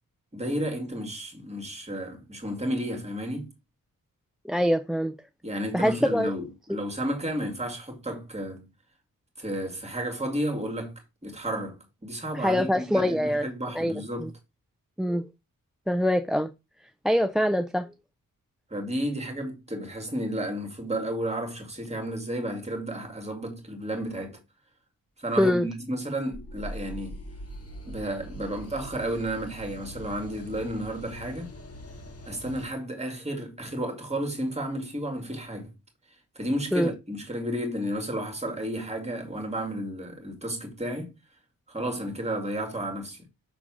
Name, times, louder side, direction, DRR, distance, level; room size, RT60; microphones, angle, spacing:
voice 1, 0.3-3.5 5.4-8.7 9.4-14.3 18.7-24.4 25.2-27.2 27.9-31.5 32.3-35.7 36.4-41.1 41.7-43.3, right 1 dB, 20° right, 2.2 m, -32 dB
voice 2, 4.4-5.1 5.7-6.3 12.3-13.5 13.7-13.9 14.2-14.3 15.0-15.3 15.9-16.5 17.0-17.9 25.4-25.7 36.7-36.9, equal, ahead, 0.4 m, -24 dB
Mystic whistle, 26.3-32.7, equal, 45° left, 1.7 m, -42 dB
6.1 x 4.0 x 6.0 m
wide cardioid pair, 155°, 34 cm